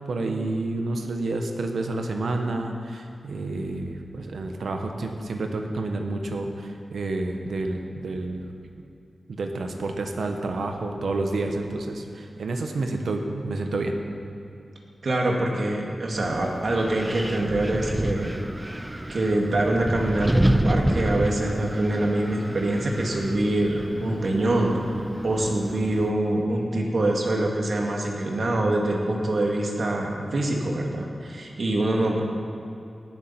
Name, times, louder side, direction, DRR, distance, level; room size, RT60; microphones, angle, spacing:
voice 1, 0.1-8.5 9.3-13.9, right 2 dB, 90° right, 4 dB, 1.2 m, -29 dB
voice 2, 15.0-18.3 19.1-24.8 25.2-32.2, right 1 dB, 65° right, 0 dB, 2.2 m, -25 dB
Wind, 16.2-26.1, right 1 dB, 15° right, 0.6 m, -29 dB
18.0 x 7.4 x 5.9 m, 2.6 s
wide cardioid pair, 75°, 0 cm